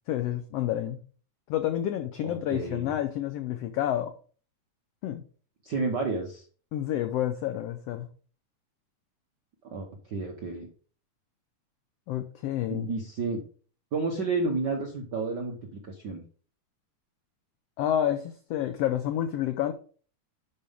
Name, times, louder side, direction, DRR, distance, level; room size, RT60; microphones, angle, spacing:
voice 1, 0.1-1.0 1.5-4.1 5.0-5.2 6.7-8.1 12.1-12.9 17.8-19.7, left 11 dB, 85° left, 1.4 m, -29 dB
voice 2, 2.2-2.9 5.6-6.4 9.7-10.7 12.7-13.4 13.9-16.2, right 3 dB, 70° right, 1.0 m, -31 dB
11.0 x 5.5 x 3.5 m
omnidirectional pair, 3.5 m